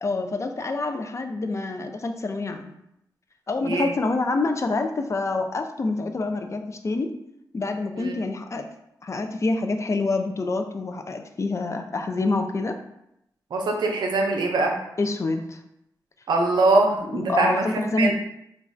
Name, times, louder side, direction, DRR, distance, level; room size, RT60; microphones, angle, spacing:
voice 1, 0.0-2.7 3.5-7.1 7.5-8.7 9.0-12.8 15.0-15.6 17.1-18.1, left 3 dB, 40° left, 5 dB, 0.3 m, -26 dB
voice 2, 13.5-14.8 16.3-18.1, right 2 dB, 80° right, 2 dB, 0.4 m, -22 dB
3.1 x 2.3 x 2.5 m, 0.80 s
cardioid pair, 60°, 7 cm